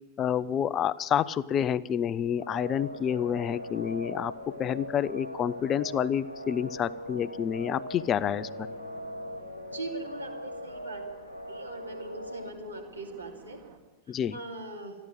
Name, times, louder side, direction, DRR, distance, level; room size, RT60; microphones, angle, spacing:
voice 1, 0.2-4.3 4.6-8.5 14.1-14.4, left 9 dB, 30° left, 17 dB, 0.4 m, -28 dB
sound 1, 2.4-12.5, equal, 85° left, 0.6 m, -40 dB
sound 2, 2.8-13.8, right 6 dB, 45° right, 1.8 m, -54 dB
Bowed string instrument, 7.9-10.9, left 5 dB, 60° left, 1.3 m, -55 dB
voice 2, 9.7-11.0 11.5-13.6 14.3-14.9, right 2 dB, 80° right, 0 dB, 2.8 m, -40 dB
13.5 x 11.0 x 8.9 m, 1.1 s
figure-of-eight pair, 90°, 0 cm